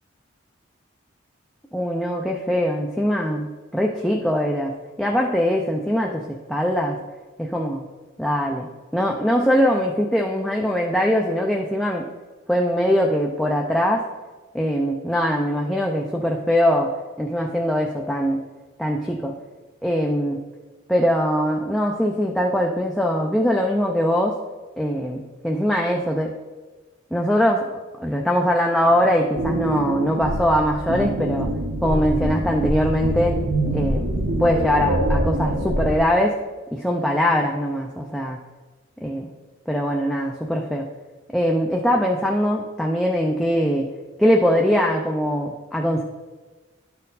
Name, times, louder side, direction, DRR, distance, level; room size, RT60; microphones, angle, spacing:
voice 1, 1.7-4.7 5.0-7.0 7.4-7.8 8.2-8.7 8.9-12.0 12.5-14.1 14.5-16.9 17.2-18.4 18.8-19.3 19.8-20.4 20.9-24.4 24.8-26.3 27.1-27.7 28.0-31.5 31.8-33.4 33.7-34.1 34.4-36.4 36.7-38.4 39.0-39.3 39.7-40.8 41.3-43.9 44.2-46.0, equal, ahead, 0 dB, 0.4 m, -22 dB
sound 1, 28.8-36.0, right 1 dB, 55° right, 0.8 m, -25 dB
11.0 x 4.3 x 4.0 m, 1.3 s
head